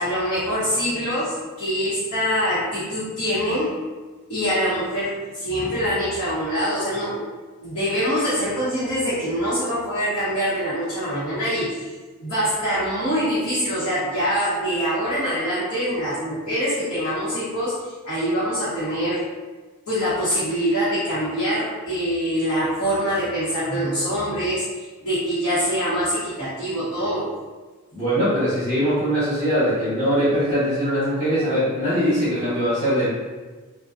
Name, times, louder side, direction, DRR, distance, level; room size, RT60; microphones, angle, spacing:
voice 1, 0.0-3.8 4.3-7.3 7.6-11.9 12.2-19.3 19.9-27.3, equal, 75° left, -12 dB, 1.1 m, -24 dB
voice 2, 27.9-33.1, equal, 25° left, -15 dB, 1.2 m, -21 dB
3.7 x 2.2 x 2.5 m, 1.3 s
head